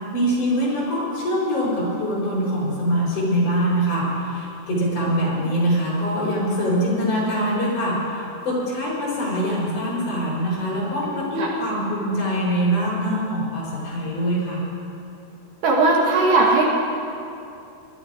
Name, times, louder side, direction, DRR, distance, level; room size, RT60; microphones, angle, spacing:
voice 1, 0.1-14.6, equal, 50° left, -5 dB, 6.0 m, -23 dB
voice 2, 11.1-11.5 15.6-16.6, right 3 dB, 65° right, -1 dB, 2.7 m, -18 dB
21.0 x 12.0 x 4.9 m, 2.7 s
omnidirectional pair, 4.5 m